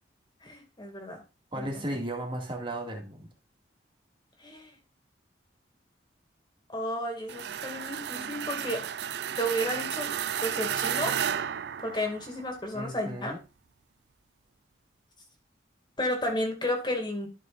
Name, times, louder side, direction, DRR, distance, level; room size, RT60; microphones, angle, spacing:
voice 1, 0.4-1.2 1.6-1.8 4.4-4.8 6.7-8.8 9.4-10.1 10.4-11.1 11.8-13.3 16.0-17.3, equal, 25° left, 2 dB, 2.2 m, -32 dB
voice 2, 1.5-3.3 12.7-13.4, right 1 dB, 25° right, 1 dB, 2.1 m, -35 dB
sound 1, 7.3-12.5, right 9 dB, 60° right, 0.4 m, -33 dB
12.5 x 6.5 x 2.5 m, 0.27 s
head